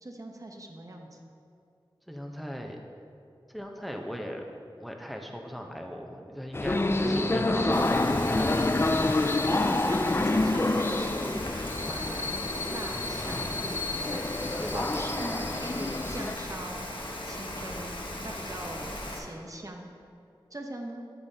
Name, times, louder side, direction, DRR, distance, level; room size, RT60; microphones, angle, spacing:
voice 1, 0.0-1.2 7.0-8.0 9.5-11.6 11.8-12.3 12.7-16.9 17.2-18.0 18.2-19.9 20.5-21.0, right 1 dB, 40° right, 2 dB, 0.9 m, -40 dB
voice 2, 2.1-2.8 3.5-4.4 4.8-9.5 14.6-15.1, equal, ahead, 2 dB, 0.8 m, -38 dB
sound 1, 6.5-16.4, left 2 dB, 25° left, 0.3 m, -28 dB
Rain, 7.7-19.2, left 1 dB, 60° left, 1.0 m, -38 dB
8.8 x 8.6 x 2.8 m, 2.5 s
wide cardioid pair, 60°, 9 cm